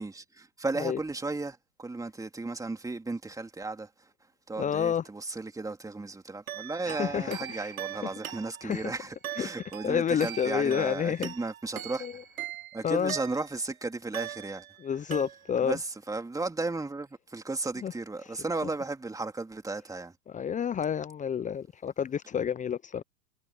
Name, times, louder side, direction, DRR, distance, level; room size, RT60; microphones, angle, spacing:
voice 1, 0.0-4.1 4.5-12.1 12.7-14.6 15.6-20.1, right 3 dB, 10° right, 3.0 m, -35 dB
voice 2, 4.6-5.0 6.8-8.1 8.6-9.0 9.3-9.5 9.8-11.3 12.0-12.1 12.8-13.1 14.8-15.8 17.8-17.9 18.2-18.3 18.6-18.7 20.3-23.0, left 8 dB, 20° left, 0.8 m, -30 dB
sound 1, 6.5-13.7 14.1-14.8 15.1-15.7, right 11 dB, 85° right, 3.1 m, -41 dB
hypercardioid pair, 100°, 41 cm